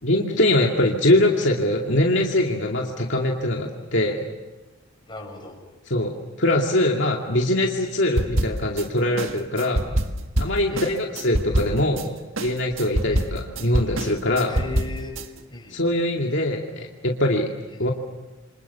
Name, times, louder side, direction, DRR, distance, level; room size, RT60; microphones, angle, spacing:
voice 1, 0.0-4.2 5.9-6.1 6.4-9.9 10.4-12.1 12.4-14.6 15.7-17.5 17.8-17.9, left 1 dB, 60° left, 0 dB, 2.4 m, -22 dB
voice 2, 5.1-5.6 10.7-10.9 13.1-13.3 14.5-15.2 15.5-15.8 17.7-17.9, left 2 dB, 20° left, 0 dB, 6.9 m, -36 dB
sound 1, 8.2-8.8 9.2-12.0 12.4-15.2, right 1 dB, 70° right, 1.7 m, -25 dB
28.5 x 25.5 x 7.0 m, 1.2 s
head